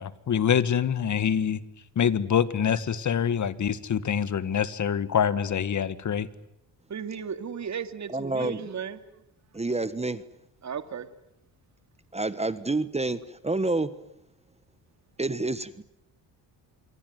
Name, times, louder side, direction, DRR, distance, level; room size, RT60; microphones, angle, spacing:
voice 1, 0.0-1.6 2.0-6.3 8.4-8.5, left 8 dB, 45° left, 1.8 m, -25 dB
voice 2, 6.9-9.0 10.6-11.1, right 7 dB, 45° right, 2.5 m, -35 dB
voice 3, 8.1-8.6 9.5-10.2 12.1-13.9 15.2-15.8, right 2 dB, 15° right, 1.4 m, -28 dB
27.0 x 23.5 x 9.4 m
cardioid pair, 90°, 41 cm